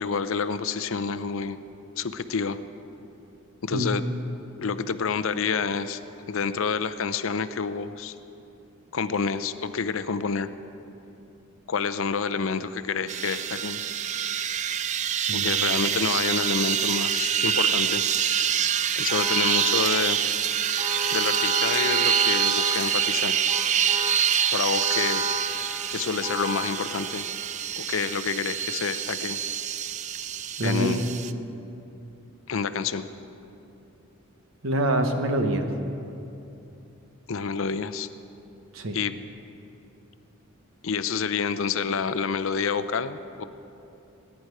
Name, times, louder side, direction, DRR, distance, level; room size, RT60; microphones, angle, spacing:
voice 1, 0.0-1.6 2.0-2.6 3.6-4.0 4.6-6.0 6.3-8.1 8.9-10.5 11.7-13.8 15.3-18.0 19.0-20.2 21.1-23.4 24.5-25.2 25.9-27.2 27.8-29.4 30.6-31.1 32.5-33.1 37.3-38.1 38.9-39.1 40.8-43.4, left 5 dB, 65° left, 12 dB, 0.5 m, -28 dB
sound 1, 13.1-31.3, right 9 dB, 35° right, 0.3 m, -26 dB
Vehicle horn car horn honking, 19.1-20.0 20.8-23.0 23.5-24.3 24.8-25.6 26.2-26.8, left 1 dB, 15° right, 0.9 m, -33 dB
voice 2, 30.6-30.9 34.6-35.7 38.7-39.0, right 1 dB, 65° right, 5 dB, 1.1 m, -25 dB
21.0 x 10.0 x 4.8 m, 2.8 s
head